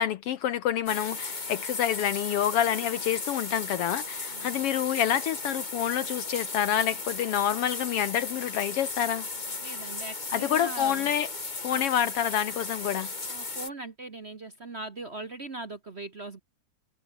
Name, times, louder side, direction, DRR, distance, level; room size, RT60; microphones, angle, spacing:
voice 1, 0.0-9.2 10.3-11.3 11.6-13.1, left 10 dB, 75° left, 1.4 m, -27 dB
sound 1, 0.9-13.7, left 3 dB, 20° left, 1.3 m, -36 dB
voice 2, 4.3-4.7 9.6-11.2 11.7-11.8 13.3-16.4, right 2 dB, 50° right, 0.7 m, -40 dB
omnidirectional pair, 3.4 m